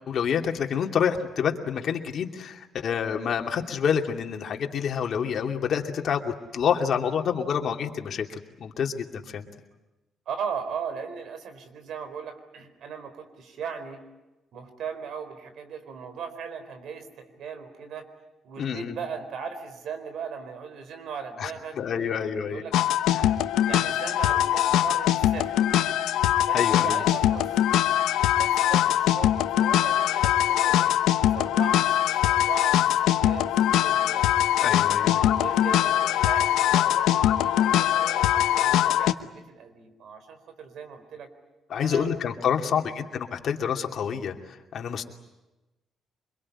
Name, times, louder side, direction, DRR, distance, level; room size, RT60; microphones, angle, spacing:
voice 1, 0.1-9.5 18.6-19.0 21.4-21.5 21.8-22.6 23.1-23.4 26.5-27.0 34.6-35.3 41.7-45.0, left 7 dB, 60° left, 3 dB, 2.6 m, -28 dB
voice 2, 10.3-14.0 14.5-18.1 18.4-22.8 23.2-23.3 23.7-25.6 26.4-27.6 28.2-30.9 31.3-33.5 33.8-34.3 35.2-41.3 41.8-42.1 42.7-43.0, right 6 dB, 70° right, 8 dB, 4.4 m, -38 dB
sound 1, 22.7-39.1, left 12 dB, 90° left, 1.0 m, -22 dB
25.0 x 22.5 x 9.9 m, 1.0 s
cardioid pair, 90°, 0 cm